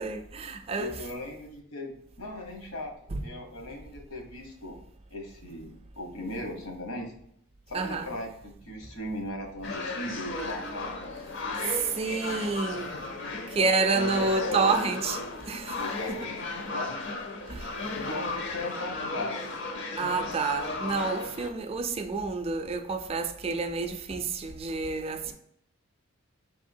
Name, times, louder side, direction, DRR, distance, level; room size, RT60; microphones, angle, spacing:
voice 1, 0.0-1.1 3.1-3.2 7.7-8.1 11.7-12.9 13.5-15.2 15.5-15.8 16.1-16.3 17.5-17.7 20.0-25.3, right 4 dB, 25° right, 0.3 m, -29 dB
voice 2, 0.8-2.9 3.2-4.8 5.1-7.1 7.7-11.2 12.3-12.6 13.2-14.7 15.7-17.0 17.9-19.6, left 1 dB, 80° left, 1.2 m, -38 dB
sound 1, 9.6-21.5, left 3 dB, 55° left, 0.6 m, -35 dB
4.7 x 3.6 x 2.6 m
head